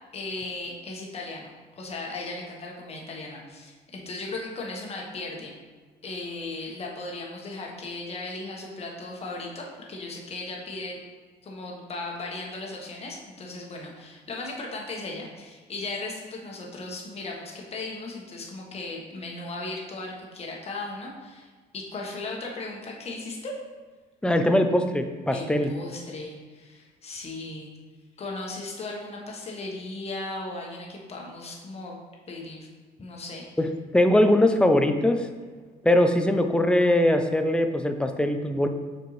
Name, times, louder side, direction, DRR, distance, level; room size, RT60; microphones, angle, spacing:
voice 1, 0.1-5.5 6.0-10.9 11.4-23.5 25.3-27.7 28.2-32.0 32.3-32.7 33.0-33.5, left 2 dB, 35° left, -1 dB, 1.3 m, -37 dB
voice 2, 24.2-25.7 33.6-35.3 35.8-38.7, left 1 dB, 5° left, 6 dB, 0.4 m, -21 dB
6.7 x 4.5 x 3.2 m, 1.5 s
cardioid pair, 110°, 17 cm